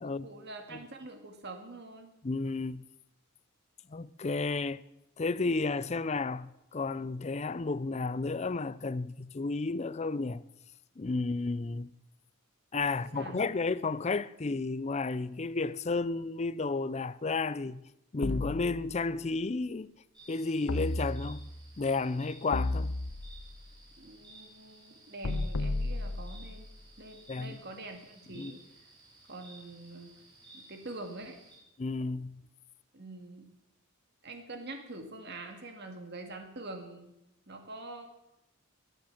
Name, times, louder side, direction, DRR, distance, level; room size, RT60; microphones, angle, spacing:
voice 1, 0.0-2.1 12.7-12.8 13.1-13.5 24.0-26.7 27.0-28.6 29.3-30.1 30.5-31.4 32.9-33.5 34.2-37.1 37.5-38.1, right 2 dB, 50° right, 1.9 m, -45 dB
voice 2, 2.2-2.8 3.9-4.8 5.2-10.4 11.0-11.9 12.7-17.8 18.1-19.9 20.3-21.4 21.8-22.9 27.3-27.6 28.3-28.5 31.8-32.4, left 3 dB, 30° left, 0.5 m, -32 dB
sound 1, 18.2-19.3 20.7-21.7 22.5-23.6 25.2-26.7, left 2 dB, 75° left, 0.9 m, -34 dB
sound 2, 20.1-31.6, right 2 dB, 20° right, 6.9 m, -56 dB
22.5 x 8.0 x 7.1 m
head